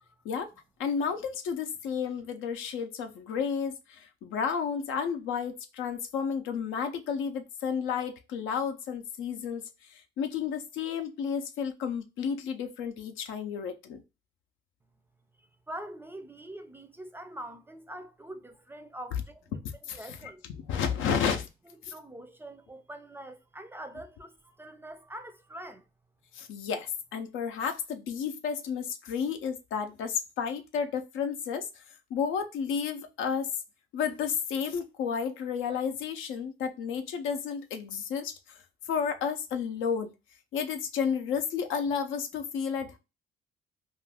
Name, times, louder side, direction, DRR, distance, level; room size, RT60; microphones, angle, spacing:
voice 1, 0.8-14.0 19.9-20.0 20.7-21.4 21.8-21.9 26.3-31.8 32.1-33.5 33.9-38.6 38.9-40.1 40.5-43.0, left 7 dB, 90° left, 0.5 m, -32 dB
voice 2, 15.7-19.6 19.9-20.4 21.1-21.2 21.9-25.9, right 1 dB, 10° right, 0.4 m, -44 dB
2.5 x 2.4 x 3.4 m
cardioid pair, 90°, 20 cm